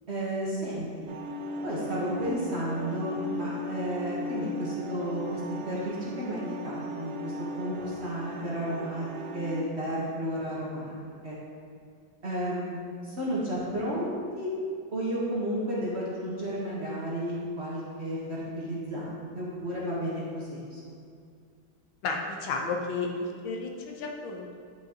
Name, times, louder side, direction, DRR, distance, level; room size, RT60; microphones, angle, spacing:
voice 1, 0.1-1.1 1.6-9.1 9.3-10.9 11.2-11.4 12.2-14.5 14.9-21.1, equal, 35° right, -7 dB, 1.3 m, -32 dB
sound 1, 1.1-9.6, equal, 70° right, 1.0 m, -37 dB
voice 2, 22.0-24.6, left 3 dB, 80° left, 1 dB, 1.6 m, -32 dB
9.4 x 5.6 x 2.9 m, 2.3 s
omnidirectional pair, 2.2 m